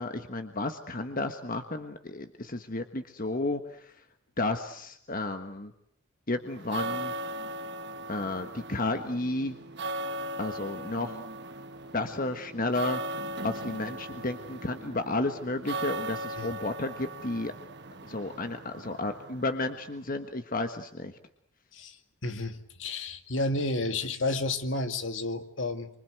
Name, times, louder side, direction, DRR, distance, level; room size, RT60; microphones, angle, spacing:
voice 1, 0.0-3.9 4.4-5.7 6.3-7.1 8.1-9.6 10.4-11.2 11.9-13.0 13.4-17.5 18.0-21.2, left 2 dB, 45° left, 7 dB, 1.4 m, -32 dB
sound 1, 6.5-20.0, right 2 dB, 60° right, 1.3 m, -38 dB
voice 2, 22.2-25.9, left 2 dB, 70° left, 7 dB, 2.3 m, -31 dB
27.5 x 25.5 x 8.0 m, 0.70 s
head